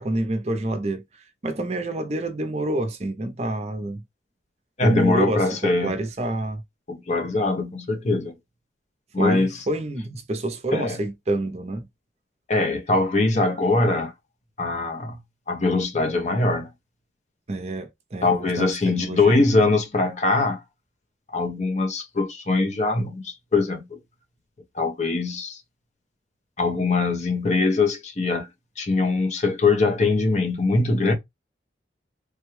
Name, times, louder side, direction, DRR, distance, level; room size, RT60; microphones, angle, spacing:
voice 1, 0.0-4.0 4.8-6.6 9.2-11.9 17.5-19.4, right 1 dB, 35° right, 0.6 m, -28 dB
voice 2, 4.8-5.9 6.9-8.3 9.1-9.5 10.7-11.0 12.5-14.1 14.6-15.2 15.5-16.7 18.2-20.6 21.3-24.0 24.7-25.6 26.6-28.5 28.8-31.1, left 3 dB, 40° left, 0.7 m, -22 dB
3.3 x 2.2 x 3.1 m
head